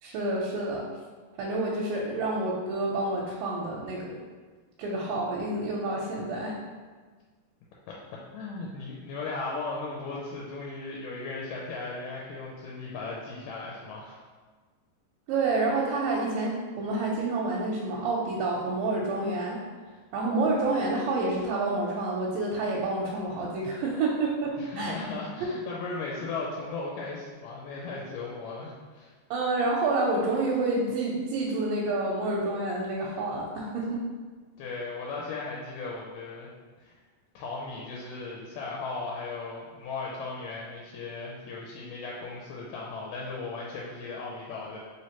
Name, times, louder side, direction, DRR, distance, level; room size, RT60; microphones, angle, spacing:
voice 1, 0.0-0.9 1.4-4.2 4.8-6.6 15.3-19.6 20.1-24.9 29.3-34.0, right 2 dB, 85° right, -3 dB, 2.2 m, -28 dB
voice 2, 8.3-14.2 24.6-29.1 34.6-36.5 36.8-36.9 37.3-44.8, left 3 dB, 85° left, -3 dB, 2.1 m, -37 dB
4.9 x 3.2 x 2.8 m, 1.4 s
omnidirectional pair, 3.8 m